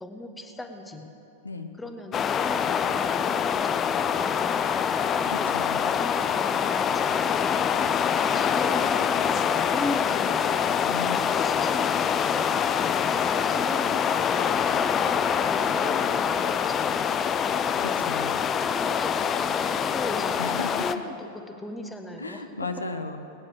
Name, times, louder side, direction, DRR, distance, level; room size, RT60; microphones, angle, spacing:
voice 1, 0.0-1.1 1.8-4.7 5.3-5.5 5.8-7.5 8.3-10.7 11.1-12.5 13.0-13.9 14.3-17.1 17.9-18.2 18.6-22.4, left 1 dB, 5° left, 5 dB, 1.3 m, -38 dB
voice 2, 1.4-1.7 5.2-5.9 10.8-11.3 17.7-18.4 20.4-21.0 22.2-23.2, left 3 dB, 80° left, 7 dB, 0.8 m, -35 dB
sound 1, 2.1-21.0, left 7 dB, 25° left, 0.5 m, -25 dB
20.0 x 9.6 x 6.5 m, 2.8 s
figure-of-eight pair, 90°, 0 cm